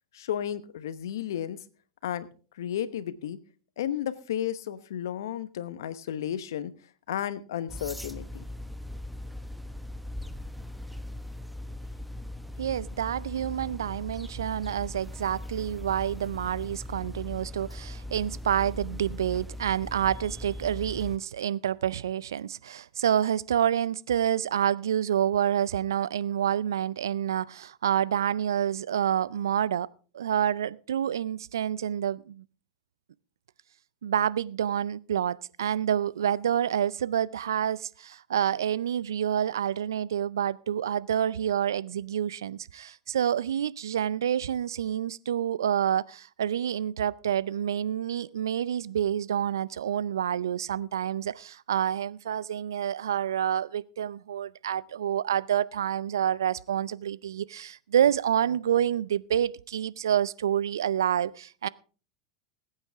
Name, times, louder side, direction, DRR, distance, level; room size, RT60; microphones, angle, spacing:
voice 1, 0.1-1.6 2.0-2.3 2.6-3.4 3.8-6.7 7.1-8.5, left 10 dB, 70° left, 1.1 m, -33 dB
New Hummingbird Bully Raspy Song, 7.7-21.2, left 1 dB, ahead, 0.9 m, -39 dB
voice 2, 12.6-29.9 30.1-32.4 34.0-61.7, right 9 dB, 75° right, 0.5 m, -28 dB
20.5 x 8.9 x 3.5 m
hypercardioid pair, 90°, 2 cm